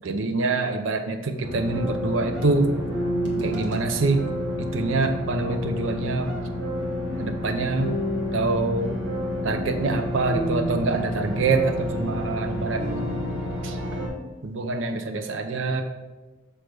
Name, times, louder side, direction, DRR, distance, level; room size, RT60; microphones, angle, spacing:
voice 1, 0.0-2.7 3.4-4.3 4.6-6.3 7.2-8.0 8.3-9.0 9.4-13.2 13.6-13.8 14.4-15.8, right 3 dB, 80° right, 6 dB, 0.6 m, -25 dB
sound 1, 1.4-14.1, equal, 60° right, 1.3 m, -29 dB
6.2 x 3.4 x 6.0 m, 1.2 s
head